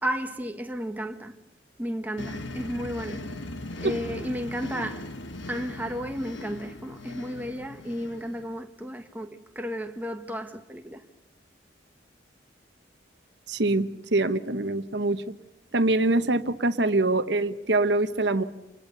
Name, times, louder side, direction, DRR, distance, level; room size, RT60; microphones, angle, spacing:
voice 1, 0.0-1.4 1.8-3.3 3.8-5.1 5.5-11.0, equal, 10° right, 1.3 m, -33 dB
sound 1, 2.2-8.6, left 2 dB, 85° left, 1.6 m, -39 dB
voice 2, 13.5-15.2 15.7-18.4, right 2 dB, 65° right, 1.1 m, -24 dB
27.5 x 20.0 x 6.8 m
head